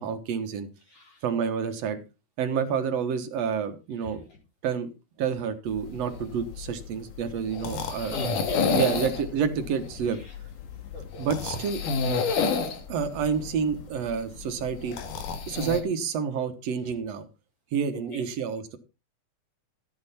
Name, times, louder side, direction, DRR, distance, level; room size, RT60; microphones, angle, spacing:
voice 1, 0.0-0.7 1.2-2.0 2.4-4.2 4.6-4.9 5.2-8.2 8.7-10.2 11.2-11.8 12.9-15.0 15.5-17.3 17.7-18.8, right 7 dB, 60° right, 8 dB, 2.2 m, -29 dB
voice 2, 0.9-1.2 2.5-2.6 4.0-4.1 8.0-9.0 10.1-10.3 10.9-11.2 18.1-18.2, left 1 dB, 50° left, -1 dB, 5.3 m, -41 dB
sound 1, 5.7-15.8, left 5 dB, 85° left, 3.1 m, -30 dB
12.5 x 8.8 x 4.2 m, 0.29 s
omnidirectional pair, 3.6 m